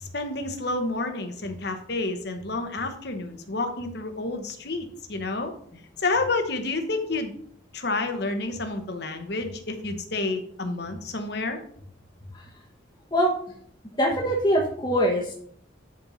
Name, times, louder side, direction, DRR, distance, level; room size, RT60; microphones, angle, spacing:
voice 1, 0.0-5.5 6.0-7.3 7.7-11.6, left 3 dB, 55° left, 6 dB, 1.1 m, -29 dB
voice 2, 14.0-15.3, equal, 20° left, -3 dB, 1.1 m, -23 dB
10.5 x 4.4 x 4.1 m, 0.63 s
head